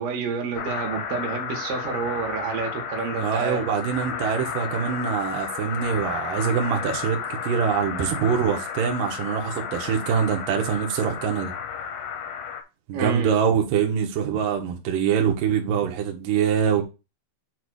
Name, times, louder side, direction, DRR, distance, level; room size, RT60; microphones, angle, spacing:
voice 1, 0.0-3.6 12.9-13.3, right 5 dB, 60° right, 3.1 m, -29 dB
sound 1, 0.5-12.6, left 7 dB, 75° left, 2.3 m, -32 dB
voice 2, 3.1-11.5 12.9-16.8, right 7 dB, 85° right, 1.9 m, -24 dB
7.8 x 3.0 x 6.2 m
omnidirectional pair, 5.7 m